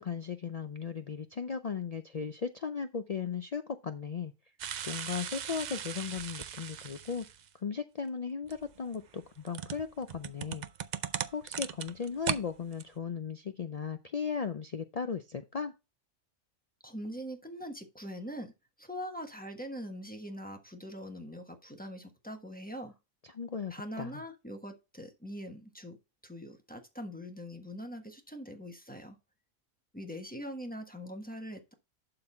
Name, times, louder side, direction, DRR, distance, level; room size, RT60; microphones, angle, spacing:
voice 1, 0.0-4.3 4.8-7.3 7.6-10.7 11.3-15.7 23.2-24.1, left 6 dB, 70° left, 0.3 m, -36 dB
sound 1, 4.6-7.5 8.5-12.4 12.7-12.8, right 8 dB, 80° right, 0.4 m, -38 dB
voice 2, 16.8-18.5 18.8-22.9 23.7-26.0 26.2-29.2 29.9-31.7, equal, 5° left, 1.1 m, -42 dB
11.5 x 4.0 x 4.3 m
omnidirectional pair, 1.4 m